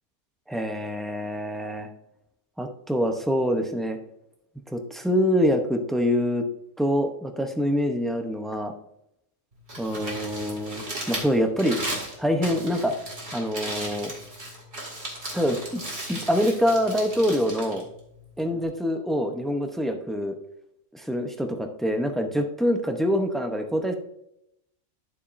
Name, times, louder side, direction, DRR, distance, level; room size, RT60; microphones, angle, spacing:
voice 1, 0.5-1.9 2.6-4.0 4.7-6.5 6.8-8.7 9.8-11.8 12.2-12.9 13.3-14.1 15.3-15.8 16.1-17.8 18.4-20.3 20.9-23.9, equal, ahead, 4 dB, 0.4 m, -25 dB
Crumpling crinkling, 9.5-18.6, right 1 dB, 50° right, 2.6 m, -36 dB
11.5 x 6.9 x 2.6 m, 0.81 s
omnidirectional pair, 1.4 m